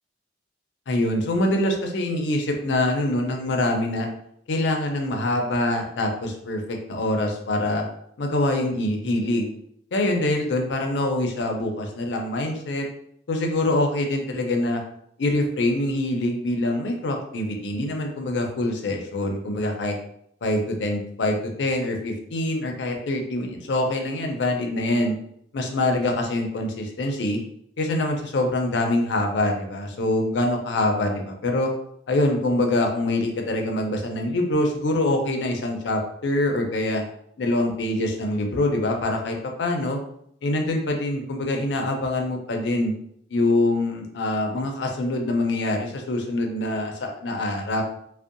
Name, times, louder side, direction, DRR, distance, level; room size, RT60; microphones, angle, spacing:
voice 1, 0.9-4.1 4.5-7.8 8.2-9.5 9.9-12.8 13.3-14.8 15.2-20.0 20.4-25.1 25.5-27.4 27.8-31.7 32.1-37.0 37.4-40.0 40.4-42.9 43.3-47.8, left 1 dB, 70° left, 3 dB, 0.5 m, -24 dB
2.6 x 2.1 x 2.5 m, 0.70 s
head